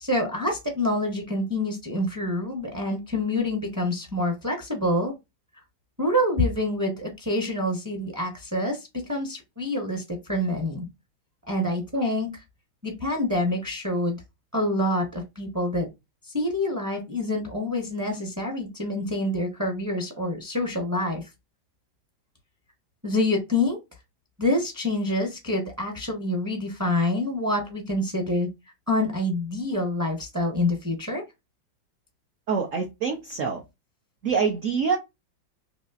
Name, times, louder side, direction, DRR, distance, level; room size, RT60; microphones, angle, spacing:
voice 1, 0.0-5.1 6.0-10.8 11.5-12.3 12.8-14.2 14.5-15.9 16.3-21.3 23.0-23.8 24.4-28.5 28.9-31.2, left 1 dB, 15° right, 0.6 m, -26 dB
voice 2, 32.5-33.6 34.2-35.0, right 6 dB, 65° right, 0.8 m, -25 dB
4.1 x 2.9 x 2.4 m
omnidirectional pair, 2.1 m